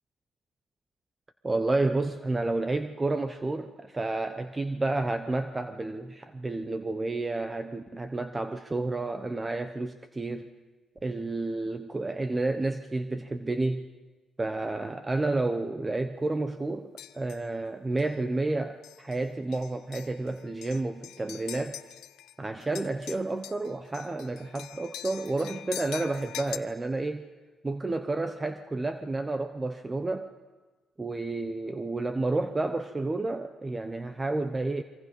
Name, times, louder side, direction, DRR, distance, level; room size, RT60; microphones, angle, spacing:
voice 1, 1.4-10.5 11.0-13.9 14.4-21.8 22.4-27.3 27.6-30.3 31.0-34.8, right 2 dB, 20° right, 9 dB, 0.9 m, -30 dB
sound 1, 17.0-17.5 18.0-18.1 18.8-19.2 19.5-22.3 22.6-26.6, left 13 dB, 90° left, 0.8 m, -43 dB
27.0 x 24.0 x 5.4 m, 1.3 s
cardioid pair, 90°, 0 cm